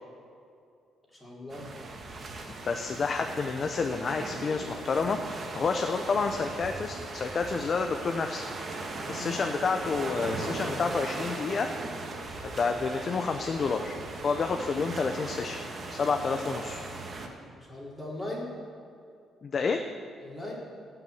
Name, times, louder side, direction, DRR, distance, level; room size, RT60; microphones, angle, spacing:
voice 1, 1.1-1.7 9.1-9.3 17.6-18.5 20.2-20.5, left 1 dB, 15° left, -4 dB, 3.6 m, -39 dB
sound 1, 1.5-17.3, right 3 dB, 40° right, 1.7 m, -38 dB
voice 2, 2.7-8.4 9.1-11.7 12.4-14.0 14.2-15.6 15.9-16.8 19.4-19.8, left 4 dB, 45° left, 5 dB, 0.8 m, -29 dB
17.5 x 6.0 x 8.0 m, 2.5 s
cardioid pair, 90°, 0 cm